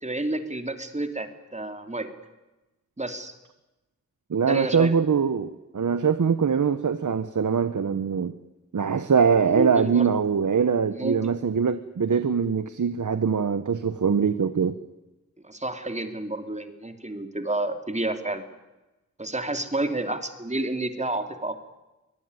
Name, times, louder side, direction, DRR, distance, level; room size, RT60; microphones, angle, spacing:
voice 1, 0.0-2.1 3.0-3.3 4.4-4.9 9.4-10.3 10.9-11.2 15.4-18.4 19.2-21.6, right 2 dB, 20° right, 7 dB, 2.9 m, -30 dB
voice 2, 4.3-8.3 8.7-14.8, right 6 dB, 70° right, 11 dB, 1.1 m, -23 dB
23.5 x 19.0 x 9.8 m, 1.0 s
wide cardioid pair, 70°, 31 cm